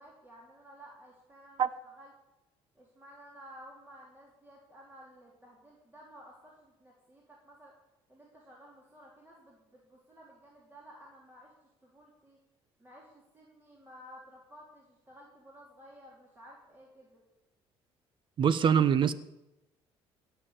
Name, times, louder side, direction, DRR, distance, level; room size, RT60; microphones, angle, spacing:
voice 1, 0.0-1.7 2.0-2.1 2.8-7.7 8.1-11.5 11.8-12.4 12.8-17.2, equal, 20° right, -3 dB, 3.6 m, -54 dB
voice 2, 18.4-19.1, right 7 dB, 50° right, 15 dB, 1.0 m, -23 dB
17.0 x 7.1 x 8.9 m, 0.96 s
cardioid pair, 100°, 11 cm